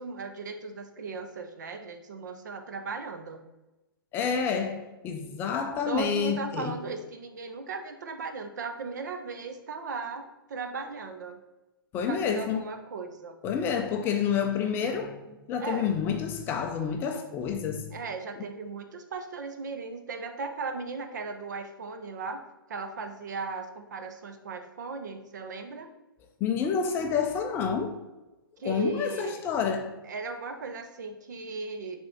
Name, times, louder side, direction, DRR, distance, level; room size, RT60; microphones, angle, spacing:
voice 1, 0.0-3.4 5.8-11.4 12.1-13.3 15.6-15.9 17.9-22.4 22.7-25.9 28.6-29.4 30.0-32.1, right 4 dB, 50° right, 0.8 m, -37 dB
voice 2, 4.1-6.8 11.9-12.6 13.4-17.9 26.4-28.0 28.6-29.9, left 7 dB, 15° left, 0.4 m, -29 dB
7.6 x 3.6 x 4.2 m
figure-of-eight pair, 120°, 12 cm